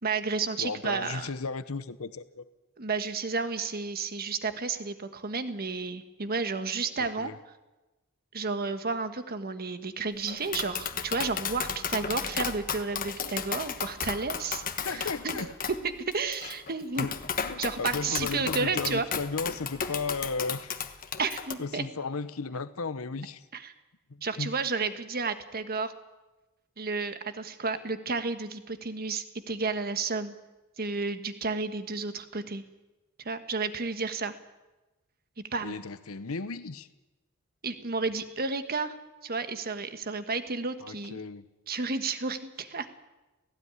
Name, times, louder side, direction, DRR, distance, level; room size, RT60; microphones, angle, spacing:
voice 1, 0.0-1.3 2.8-7.3 8.3-15.5 16.1-17.1 17.6-19.1 21.2-21.9 23.5-23.7 24.2-25.9 26.8-30.3 30.8-32.6 33.2-34.3 35.5-35.8 37.6-39.0 39.2-41.2 41.7-42.9, right 4 dB, 45° right, 9 dB, 1.4 m, -32 dB
voice 2, 0.6-2.4 7.0-7.4 14.8-15.5 16.4-16.5 17.0-20.7 21.6-23.4 24.1-24.5 35.6-36.9 40.8-41.4, left 4 dB, 75° left, 13 dB, 0.9 m, -35 dB
Tap, 10.3-21.5, left 7 dB, 40° left, 1.3 m, -34 dB
18.0 x 16.5 x 9.7 m, 1.1 s
head